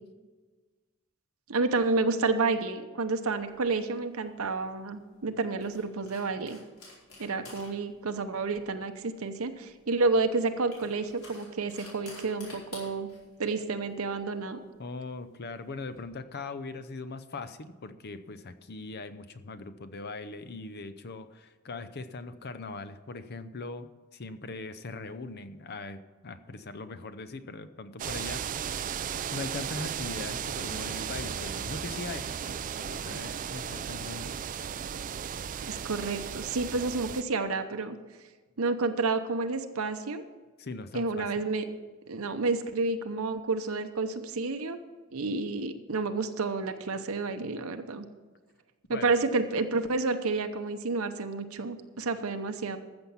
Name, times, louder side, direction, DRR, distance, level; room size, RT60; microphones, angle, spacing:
voice 1, 1.5-6.6 7.2-13.1 13.4-14.6 35.7-38.0 38.6-40.2 40.9-41.6 42.1-44.8 45.1-48.1 48.9-52.8, right 3 dB, 75° right, 8 dB, 0.8 m, -30 dB
sound 1, 3.4-16.0, left 2 dB, 75° left, 4.6 m, -53 dB
voice 2, 14.8-29.0 29.3-34.3 40.6-41.3 48.9-49.1, left 3 dB, 45° left, 12 dB, 0.7 m, -40 dB
sound 2, 28.0-37.2, right 8 dB, 35° right, 0.4 m, -35 dB
14.0 x 7.1 x 5.7 m, 1.3 s
head